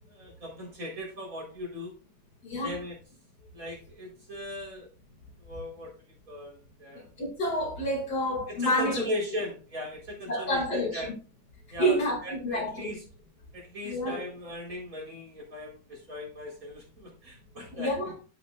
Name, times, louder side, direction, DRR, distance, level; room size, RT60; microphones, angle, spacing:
voice 1, 0.1-1.9 2.6-3.0 3.5-4.9 5.4-5.9 6.3-7.0 8.5-11.1 11.7-13.0 13.5-18.1, left 1 dB, 55° right, 4.3 m, -38 dB
voice 2, 2.4-2.7 7.2-9.0 10.3-11.0 11.8-12.9 13.8-14.2 17.8-18.1, equal, 70° left, 2.9 m, -28 dB
12.5 x 6.1 x 2.4 m
omnidirectional pair, 1.8 m